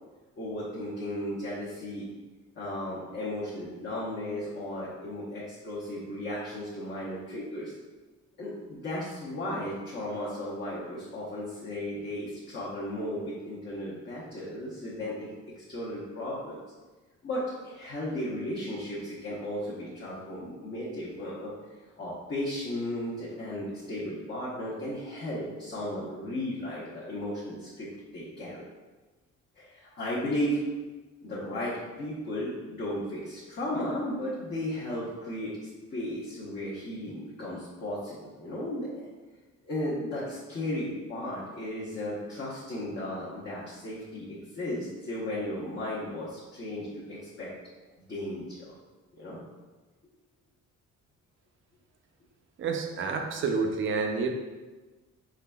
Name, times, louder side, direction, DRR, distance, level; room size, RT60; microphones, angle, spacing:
voice 1, 0.4-2.1 2.6-7.7 8.4-16.6 17.2-21.5 22.0-28.6 29.6-30.6 31.2-39.1 39.6-47.5 48.1-48.7 49.2-49.4, left 1 dB, 35° left, -8 dB, 0.8 m, -35 dB
voice 2, 52.6-54.3, right 4 dB, 45° right, 4 dB, 0.4 m, -29 dB
4.3 x 3.8 x 2.2 m, 1.2 s
cardioid pair, 170°, 29 cm